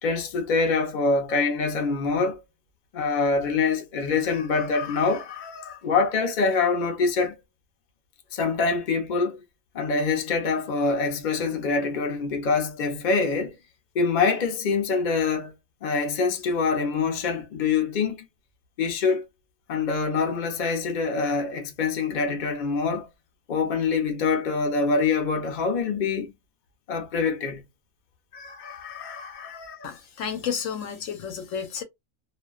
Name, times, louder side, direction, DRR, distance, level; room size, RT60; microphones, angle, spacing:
voice 1, 0.0-2.4 2.9-7.4 8.3-9.4 9.7-13.6 13.9-15.5 15.8-18.2 18.8-19.2 19.7-23.1 23.5-26.3 26.9-27.6 28.3-30.0, left 4 dB, 50° left, 0.5 m, -25 dB
voice 2, 29.8-31.8, left 7 dB, 70° left, 0.9 m, -31 dB
2.4 x 2.2 x 2.3 m
omnidirectional pair, 1.5 m